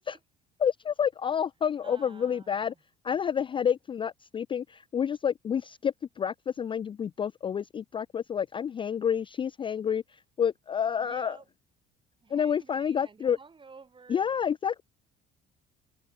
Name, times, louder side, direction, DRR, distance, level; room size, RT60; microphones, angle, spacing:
voice 1, 0.6-2.7 3.0-10.0 10.4-11.4 12.3-13.4 14.1-14.8, left 8 dB, 30° left, 0.4 m, -29 dB
voice 2, 1.8-2.8 11.0-11.4 12.2-14.4, right 4 dB, 25° right, 4.7 m, -51 dB
supercardioid pair, 85°, 18 cm